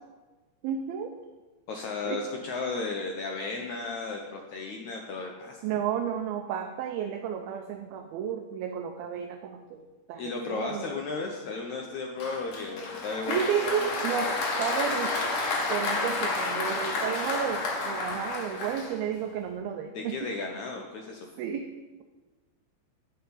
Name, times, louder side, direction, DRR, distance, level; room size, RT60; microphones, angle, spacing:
voice 1, 0.6-1.2 2.1-2.2 2.5-2.7 5.6-11.0 13.3-15.3 15.7-20.3 21.4-21.7, right 8 dB, 80° right, 4 dB, 2.4 m, -32 dB
voice 2, 1.7-5.6 10.2-13.9 19.9-21.3, left 4 dB, 80° left, 1 dB, 1.6 m, -34 dB
Applause, 12.2-19.3, left 3 dB, 60° left, 2.9 m, -30 dB
10.0 x 5.8 x 8.6 m, 1.2 s
omnidirectional pair, 4.7 m